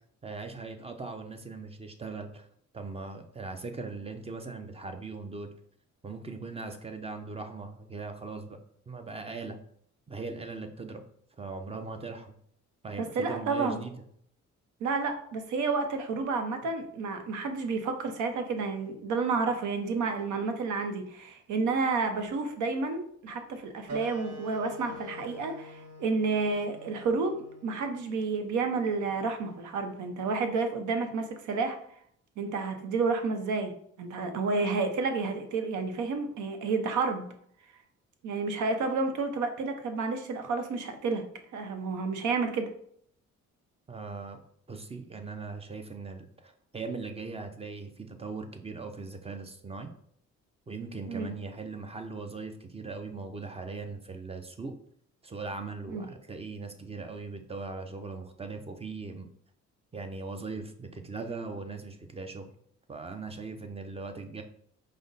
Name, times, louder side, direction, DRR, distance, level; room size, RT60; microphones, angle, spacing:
voice 1, 0.2-2.5 2.7-5.5 6.0-8.6 8.9-9.6 10.1-11.0 11.4-12.3 12.8-13.9 43.9-44.4 44.7-49.9 50.7-54.7 55.2-59.3 59.9-62.5 62.9-64.4, right 4 dB, 20° right, 7 dB, 0.6 m, -39 dB
voice 2, 13.0-13.8 14.8-27.4 27.6-31.8 32.4-33.7 34.0-37.3 38.2-41.2 41.5-42.7 51.1-51.3 55.9-56.1, right 4 dB, 75° right, 6 dB, 0.8 m, -30 dB
sound 1, 23.9-29.0, equal, 60° right, 1.1 m, -45 dB
4.9 x 2.2 x 3.9 m, 0.65 s
cardioid pair, 90°, 30 cm